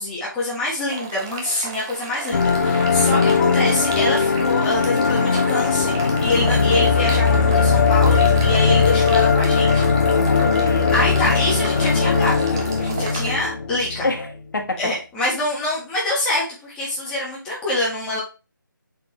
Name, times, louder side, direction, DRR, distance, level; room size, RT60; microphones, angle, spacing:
voice 1, 0.0-9.9 10.9-14.1 14.8-18.2, left 2 dB, 5° left, 1.6 m, -25 dB
sound 1, 0.9-13.3, right 4 dB, 15° right, 0.5 m, -34 dB
sound 2, 2.3-14.2, left 5 dB, 50° left, 1.1 m, -19 dB
voice 2, 3.1-3.5 6.5-7.0 10.1-11.0 14.0-14.9, left 3 dB, 65° left, 1.7 m, -28 dB
7.4 x 4.1 x 3.2 m
figure-of-eight pair, 165°, 11 cm